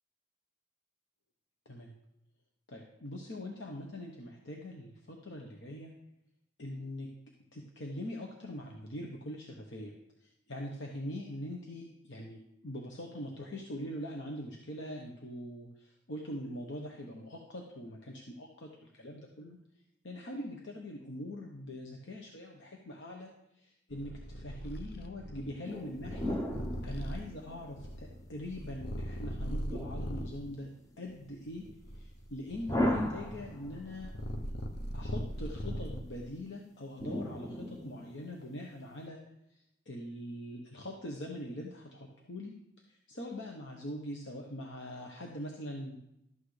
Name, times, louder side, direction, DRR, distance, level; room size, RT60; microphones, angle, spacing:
voice 1, 2.7-5.9 6.6-7.1 7.5-9.9 10.2-19.6 20.0-26.4 26.8-30.7 31.0-31.6 31.9-34.1 34.9-39.2 39.5-42.5 42.9-46.0, left 1 dB, 80° left, 0 dB, 1.1 m, -43 dB
Purr, 23.9-30.4 31.1-36.3, equal, 60° left, 0.8 m, -40 dB
sound 1, 25.6-27.9 29.6-30.9 32.7-34.0 37.0-38.4, left 1 dB, 20° left, 0.8 m, -36 dB
12.5 x 8.3 x 3.3 m, 0.83 s
head